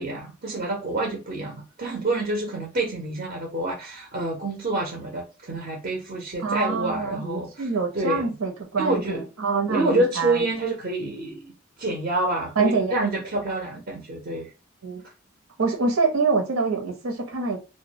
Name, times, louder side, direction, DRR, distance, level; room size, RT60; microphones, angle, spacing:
voice 1, 0.0-7.7 7.9-8.3 8.8-9.2 9.7-11.5 11.8-14.5, right 2 dB, 40° right, 0.5 m, -27 dB
voice 2, 6.4-10.4 12.6-12.9 14.8-15.0 15.6-17.6, right 4 dB, 90° right, 0.8 m, -25 dB
2.3 x 2.1 x 2.7 m
head